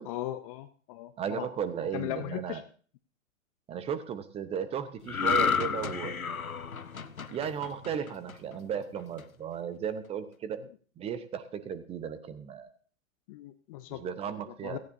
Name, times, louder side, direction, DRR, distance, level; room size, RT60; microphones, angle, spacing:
voice 1, 0.1-1.5 1.9-2.6 13.3-14.0 14.6-14.8, left 15 dB, 25° left, 12 dB, 0.6 m, -37 dB
voice 2, 1.2-2.6 3.7-6.2 7.3-10.6 11.0-12.7 13.9-14.8, right 8 dB, 15° right, 14 dB, 0.8 m, -35 dB
sound 1, 5.1-8.6 9.0-9.2, left 6 dB, 90° left, 0.8 m, -31 dB
17.0 x 14.5 x 2.7 m, 0.42 s
figure-of-eight pair, 110°, 41 cm